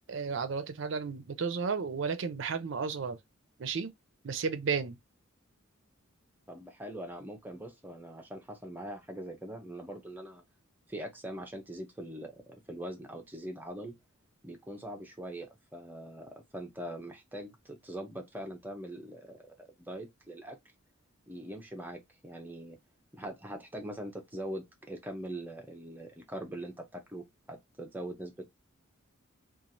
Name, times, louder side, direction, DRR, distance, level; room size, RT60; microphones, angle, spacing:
voice 1, 0.1-3.2 3.6-3.9 4.2-5.0, right 5 dB, 60° right, 0.5 m, -33 dB
voice 2, 6.5-10.4 10.9-14.0 14.4-20.6 21.3-22.8 23.1-28.4, right 1 dB, 10° right, 0.6 m, -42 dB
3.0 x 2.4 x 2.6 m
head